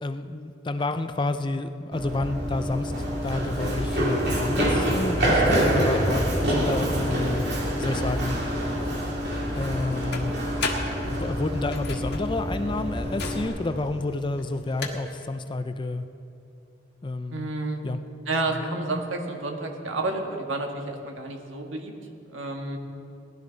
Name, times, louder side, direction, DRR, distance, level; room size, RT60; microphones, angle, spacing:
voice 1, 0.0-8.4 9.5-10.4 11.1-16.1 17.0-17.5 17.8-18.0 18.5-18.6, left 2 dB, 25° left, 9 dB, 0.4 m, -30 dB
Run, 1.9-13.5, equal, 55° right, 2.8 m, -26 dB
sound 1, 5.7-14.9, left 3 dB, 55° left, 1.5 m, -39 dB
voice 2, 17.3-17.8 18.3-21.9 22.3-22.8, right 2 dB, 85° right, 2 dB, 1.6 m, -30 dB
19.5 x 12.0 x 4.0 m, 2.7 s
head